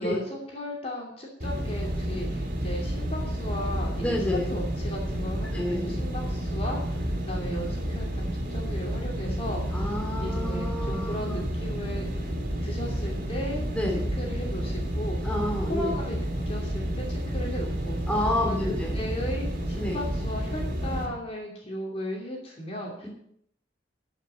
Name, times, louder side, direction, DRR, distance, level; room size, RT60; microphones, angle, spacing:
voice 1, 0.0-9.9 10.2-12.3 12.6-13.6 14.2-15.2 15.7-18.0 18.4-18.6 18.9-23.1, equal, 30° left, -1 dB, 2.7 m, -36 dB
sound 1, 1.4-21.1, equal, 50° right, 2.9 m, -30 dB
voice 2, 4.0-4.6 5.5-6.0 9.7-11.4 13.7-14.0 15.2-16.0 18.1-18.9 19.7-20.0, left 1 dB, 5° left, -1 dB, 3.1 m, -29 dB
13.5 x 6.0 x 8.2 m, 0.70 s
head